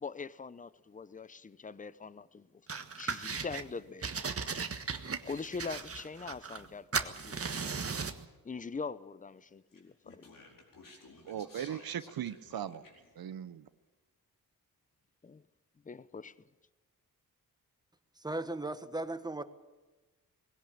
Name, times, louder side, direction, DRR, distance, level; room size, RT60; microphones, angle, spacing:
voice 1, 0.0-4.5 5.2-7.7 8.4-10.4 15.2-15.4 15.8-16.3, left 5 dB, 20° left, 0.7 m, -43 dB
sound 1, 2.7-3.6 4.0-6.7 6.9-8.2, right 5 dB, 40° right, 1.5 m, -37 dB
Speech, 9.7-13.2, left 3 dB, 60° left, 4.8 m, -55 dB
voice 2, 11.3-12.8 13.2-13.6, right 9 dB, 75° right, 0.8 m, -38 dB
voice 3, 18.2-19.4, right 2 dB, 10° right, 1.4 m, -36 dB
21.0 x 16.5 x 8.7 m
cardioid pair, 85°, 36 cm